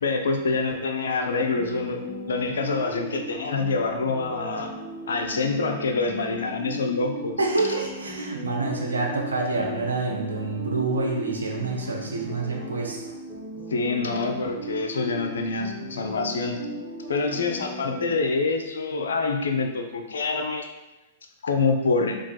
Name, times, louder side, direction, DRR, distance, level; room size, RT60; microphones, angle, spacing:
voice 1, 0.0-4.7 5.1-7.4 13.7-16.6 17.1-20.7 21.4-22.2, left 4 dB, 65° left, 5 dB, 0.4 m, -26 dB
sound 1, 1.3-18.1, right 1 dB, 50° right, 1.1 m, -38 dB
voice 2, 7.4-13.0, right 3 dB, 75° right, -1 dB, 0.6 m, -27 dB
4.5 x 2.3 x 2.3 m, 1.0 s
figure-of-eight pair, 100°, 0 cm